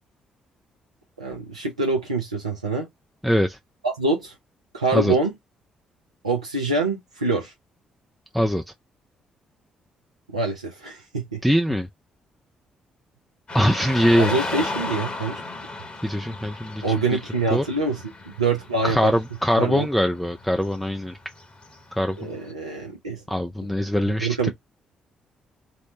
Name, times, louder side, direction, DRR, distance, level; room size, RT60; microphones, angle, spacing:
voice 1, 1.2-2.9 3.8-4.3 4.7-5.3 6.2-7.5 10.3-11.4 14.2-15.4 16.8-19.1 19.6-19.9 22.2-23.2 24.1-24.5, right 3 dB, 85° right, 0.4 m, -25 dB
voice 2, 3.2-3.6 4.9-5.1 8.3-8.6 11.4-11.9 13.5-14.5 16.0-16.8 17.1-17.2 17.5-17.6 18.8-21.2 21.9-22.2 23.3-24.5, equal, ahead, 0.3 m, -22 dB
Car passing by / Traffic noise roadway noise, 13.5-22.5, left 2 dB, 35° left, 1.2 m, -35 dB
2.9 x 2.0 x 2.9 m
figure-of-eight pair, 40°, 3 cm